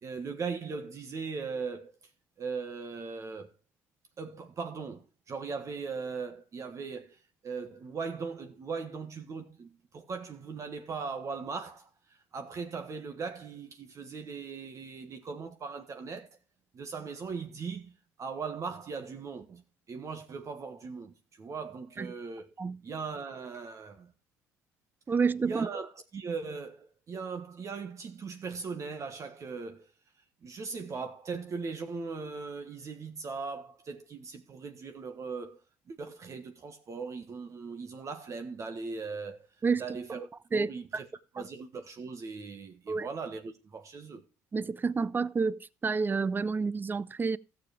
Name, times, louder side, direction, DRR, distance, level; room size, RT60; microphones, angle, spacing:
voice 1, 0.0-2.0 2.4-3.5 4.2-16.3 16.7-17.9 18.2-22.5 22.8-24.1 25.4-29.9 30.4-35.6 35.9-39.5 39.8-41.1 41.3-44.2, right 5 dB, 40° right, 1.5 m, -39 dB
voice 2, 25.1-25.7 39.6-39.9 40.5-41.0 42.9-43.1 44.5-47.4, right 4 dB, 25° right, 0.5 m, -29 dB
13.5 x 7.1 x 4.9 m
supercardioid pair, 80°, 8 cm